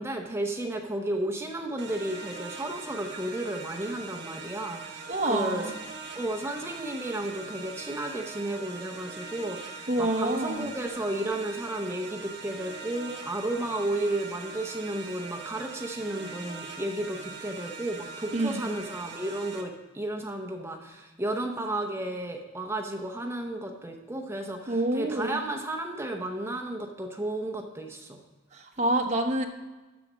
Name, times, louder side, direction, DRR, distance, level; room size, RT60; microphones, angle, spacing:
voice 1, 0.0-5.7 6.1-28.2, right 1 dB, 15° right, 2 dB, 0.7 m, -33 dB
sound 1, 1.8-19.6, right 4 dB, 60° right, 1.1 m, -42 dB
voice 2, 5.1-5.7 9.9-10.7 18.3-18.7 24.7-25.4 28.5-29.5, right 1 dB, 35° right, 2 dB, 1.0 m, -27 dB
12.0 x 4.3 x 6.1 m, 1.2 s
head